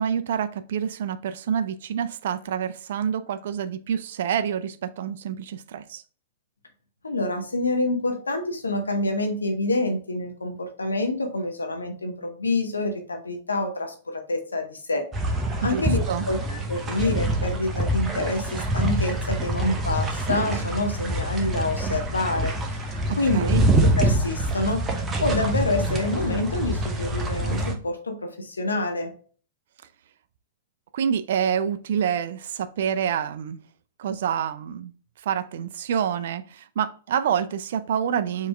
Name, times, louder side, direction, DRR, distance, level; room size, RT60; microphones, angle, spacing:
voice 1, 0.0-6.0 15.6-16.3 23.1-23.6 30.9-33.6 34.0-34.9 35.2-38.5, right 8 dB, 65° right, 0.4 m, -27 dB
voice 2, 7.0-15.1 15.6-22.5 23.2-23.5 24.0-24.9 25.2-29.1, left 2 dB, 90° left, 0.7 m, -27 dB
sound 1, 15.1-27.7, right 1 dB, 20° right, 0.9 m, -25 dB
4.6 x 3.0 x 3.3 m
hypercardioid pair, 110°, 0 cm